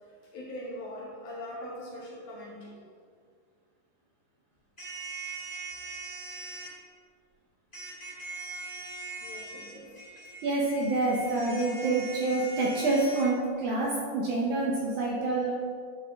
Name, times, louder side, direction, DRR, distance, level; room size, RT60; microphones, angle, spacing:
voice 1, 0.1-2.8 9.2-10.1, left 1 dB, 65° left, -3 dB, 2.3 m, -42 dB
sound 1, 4.8-6.7 7.7-13.3, right 3 dB, 30° left, 0.7 m, -41 dB
voice 2, 10.4-15.5, right 2 dB, 70° right, -4 dB, 2.0 m, -27 dB
12.0 x 5.9 x 3.5 m, 2.1 s
omnidirectional pair, 4.4 m